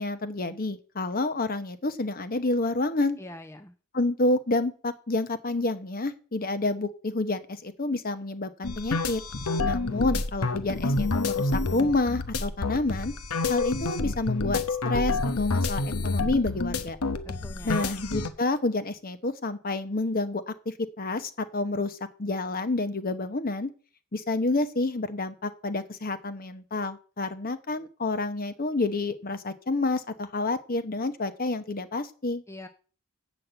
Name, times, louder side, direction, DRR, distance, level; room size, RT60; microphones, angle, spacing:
voice 1, 0.0-3.2 3.9-9.2 9.6-13.1 13.5-17.0 17.6-23.7 24.1-32.4, left 2 dB, 40° left, 10 dB, 0.9 m, -29 dB
voice 2, 3.2-3.7 17.2-18.0 32.5-32.7, left 1 dB, 10° left, 6 dB, 0.7 m, -44 dB
sound 1, 8.6-18.3, left 3 dB, 85° left, 1.0 m, -28 dB
8.5 x 6.1 x 7.8 m, 0.38 s
head